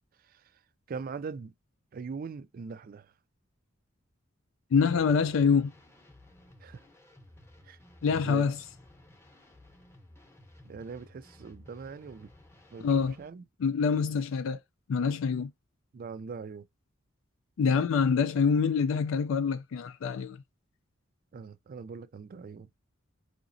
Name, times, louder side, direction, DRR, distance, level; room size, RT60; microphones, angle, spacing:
voice 1, 0.9-1.5 1.9-3.1 6.6-6.8 7.6-7.8 8.1-8.5 10.6-12.3 12.7-13.4 15.9-16.7 21.3-22.7, right 5 dB, 45° right, 0.3 m, -41 dB
voice 2, 4.7-5.7 8.0-8.6 12.8-13.1 13.6-14.6 14.9-15.5 17.6-20.4, left 6 dB, 75° left, 0.4 m, -25 dB
sound 1, 4.7-13.3, left 1 dB, 15° left, 0.7 m, -56 dB
4.9 x 2.8 x 2.6 m
head